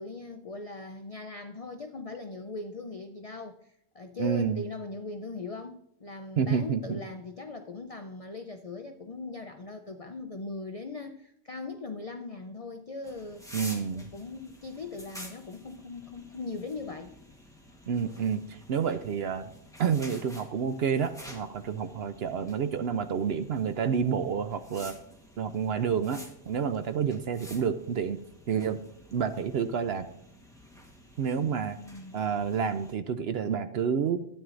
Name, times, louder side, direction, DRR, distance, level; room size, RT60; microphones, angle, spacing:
voice 1, 0.0-13.4 13.9-17.1 31.4-32.2, left 3 dB, 65° left, 6 dB, 0.3 m, -40 dB
voice 2, 4.2-4.6 6.4-7.0 13.5-14.1 17.9-19.5 19.8-25.0 25.4-28.2 28.5-28.8 29.1-30.1 31.2-31.8 32.1-34.3, right 7 dB, 65° right, 10 dB, 0.7 m, -29 dB
sound 1, 13.0-32.9, equal, 5° left, 1.0 m, -50 dB
12.5 x 9.3 x 2.5 m, 0.76 s
omnidirectional pair, 1.4 m